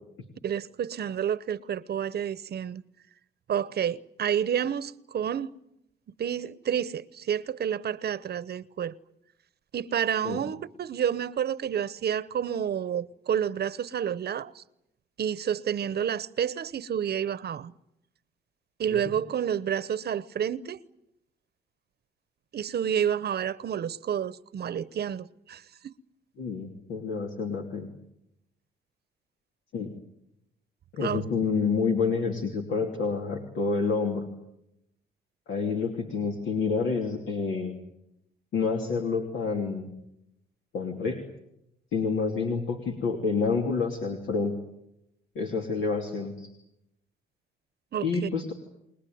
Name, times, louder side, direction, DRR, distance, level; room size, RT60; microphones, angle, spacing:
voice 1, 0.4-2.8 3.5-5.5 6.2-9.0 9.7-14.6 15.2-17.7 18.8-20.8 22.5-25.9 31.0-31.2 47.9-48.3, right 9 dB, 55° right, 0.9 m, -29 dB
voice 2, 26.4-27.9 29.7-29.9 30.9-34.2 35.5-37.7 38.5-39.9 40.7-41.2 41.9-44.5 45.3-46.5 48.0-48.5, left 4 dB, 80° left, 3.1 m, -28 dB
29.0 x 20.0 x 9.4 m
cardioid pair, 90°, 20 cm